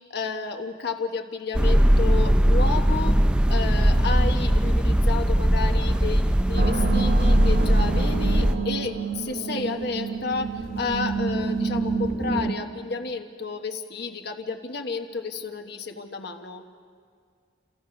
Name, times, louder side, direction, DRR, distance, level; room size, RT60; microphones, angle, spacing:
voice 1, 0.1-16.7, left 4 dB, 60° left, 4 dB, 1.2 m, -31 dB
sound 1, 1.5-8.5, equal, 5° right, 0.4 m, -20 dB
sound 2, 6.5-12.5, right 5 dB, 55° right, 1.5 m, -28 dB
29.0 x 15.5 x 5.9 m, 2.2 s
head